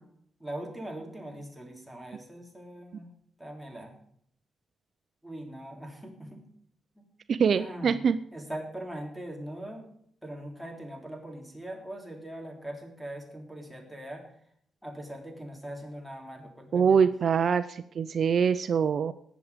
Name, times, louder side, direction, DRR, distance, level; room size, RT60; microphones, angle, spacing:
voice 1, 0.4-3.1 3.4-3.9 5.2-6.4 6.9-7.0 7.5-8.0 8.3-9.9 10.2-14.4 14.8-17.1, right 1 dB, ahead, 0 dB, 3.3 m, -41 dB
voice 2, 7.3-8.2 16.7-19.1, right 6 dB, 55° right, 12 dB, 0.5 m, -24 dB
19.0 x 7.3 x 5.1 m, 0.67 s
cardioid pair, 105°, 0 cm